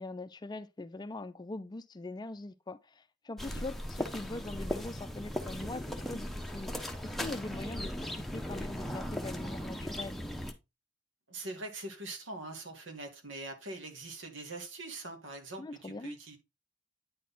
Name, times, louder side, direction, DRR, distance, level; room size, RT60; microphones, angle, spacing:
voice 1, 0.0-7.9 8.3-10.2 15.6-16.2, left 2 dB, 20° left, 0.4 m, -42 dB
sound 1, 3.4-10.5, equal, ahead, 0.8 m, -38 dB
voice 2, 11.3-16.4, right 2 dB, 90° right, 1.9 m, -43 dB
9.3 x 4.1 x 3.9 m
head